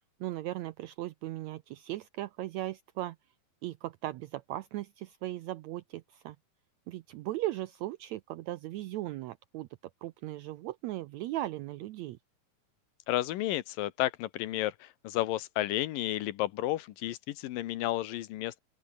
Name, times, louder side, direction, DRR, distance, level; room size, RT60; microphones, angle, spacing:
voice 1, 0.2-3.2 3.6-6.4 6.9-9.7 10.0-12.2, right 16 dB, 85° right, 1.6 m, -37 dB
voice 2, 13.1-18.6, left 15 dB, 85° left, 2.8 m, -32 dB
open air
omnidirectional pair, 3.9 m